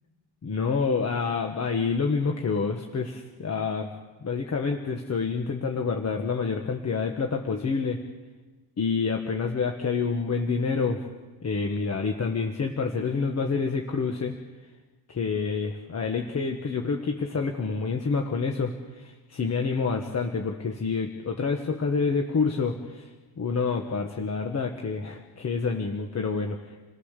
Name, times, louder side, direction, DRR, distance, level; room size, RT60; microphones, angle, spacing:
voice 1, 0.4-3.9 4.2-8.0 8.8-11.0 11.4-14.3 15.1-23.1 23.4-26.6, left 4 dB, 35° left, 2 dB, 1.6 m, -28 dB
29.0 x 18.5 x 6.8 m, 1.3 s
cardioid pair, 150°, 44 cm